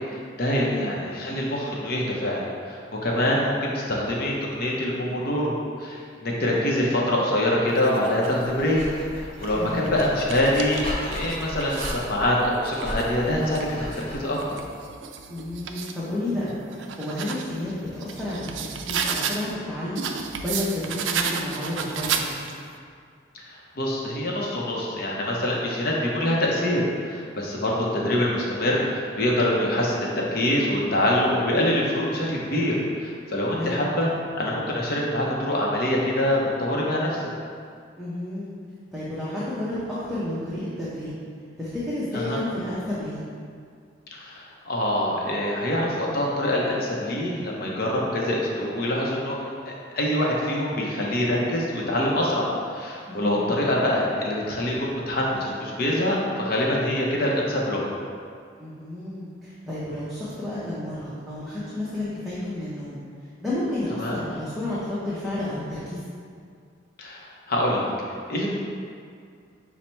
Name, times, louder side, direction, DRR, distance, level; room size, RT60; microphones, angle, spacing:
voice 1, 0.1-8.8 9.4-14.6 23.3-34.1 34.4-37.3 42.1-42.4 44.1-49.4 49.7-57.9 64.0-64.2 67.0-67.9 68.3-68.5, left 1 dB, 55° left, -3 dB, 0.6 m, -25 dB
voice 2, 6.2-6.7 9.5-9.9 15.3-16.5 17.0-20.0 20.4-22.3 33.6-33.8 38.0-38.5 38.9-41.1 41.6-43.2 53.1-53.5 58.6-63.0 63.4-66.0, left 1 dB, ahead, -11 dB, 0.6 m, -31 dB
sound 1, 7.7-8.5 9.2-12.1 12.6-16.0 16.5-19.5 19.9-22.7, right 6 dB, 75° right, 0.3 m, -33 dB
Dog, 8.4-14.4, equal, 30° left, 1.2 m, -36 dB
5.6 x 2.1 x 4.3 m, 2.2 s
head